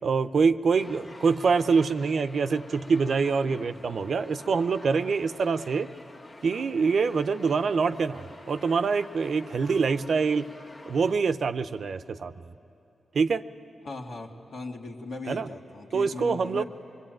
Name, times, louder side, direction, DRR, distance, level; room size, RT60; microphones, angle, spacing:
voice 1, 0.0-5.9 6.4-10.4 10.9-12.5 13.1-13.4 15.3-15.5 15.9-16.6, right 5 dB, 70° right, 12 dB, 0.6 m, -25 dB
sound 1, 0.8-11.1, left 2 dB, 50° left, 1.6 m, -47 dB
voice 2, 13.8-16.6, left 2 dB, 80° left, -1 dB, 2.2 m, -38 dB
25.0 x 21.5 x 9.0 m, 2.8 s
supercardioid pair, 45°, 0 cm